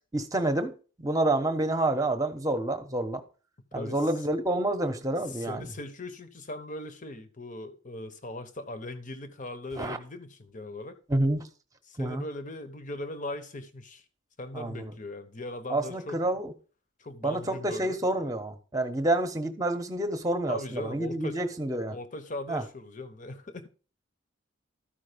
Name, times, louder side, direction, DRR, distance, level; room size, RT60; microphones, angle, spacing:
voice 1, 0.1-0.7 1.0-3.2 3.7-5.7 9.8-10.0 11.1-11.4 12.0-12.2 14.5-14.9 15.7-16.5 17.2-22.0 22.5-22.6, right 1 dB, 15° right, 1.0 m, -28 dB
voice 2, 5.3-11.0 11.9-14.0 14.4-16.2 17.0-18.0 20.5-21.4 21.9-23.7, left 2 dB, 40° left, 1.0 m, -39 dB
13.0 x 5.2 x 5.2 m
head